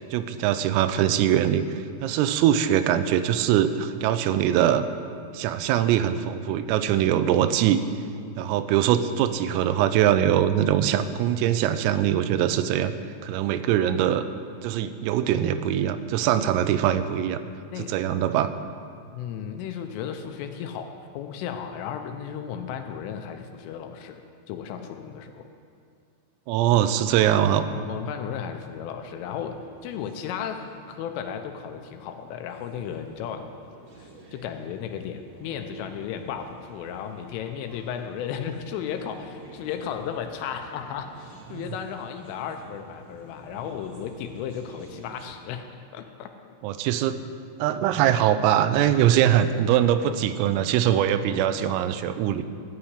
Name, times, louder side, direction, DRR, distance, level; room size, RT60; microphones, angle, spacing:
voice 1, 0.1-4.9 5.3-7.8 8.4-12.9 13.2-14.2 14.6-17.4 17.8-18.5 26.5-27.6 41.5-41.6 46.6-47.2 47.6-52.4, right 10 dB, 90° right, 11 dB, 3.3 m, -22 dB
voice 2, 19.1-24.2 24.5-25.5 27.3-33.5 34.0-45.7 45.9-46.3, left 8 dB, 80° left, 7 dB, 3.2 m, -35 dB
sound 1, 29.2-45.2, right 2 dB, 40° right, 1.7 m, -49 dB
13.5 x 5.9 x 9.6 m, 2.5 s
omnidirectional pair, 5.9 m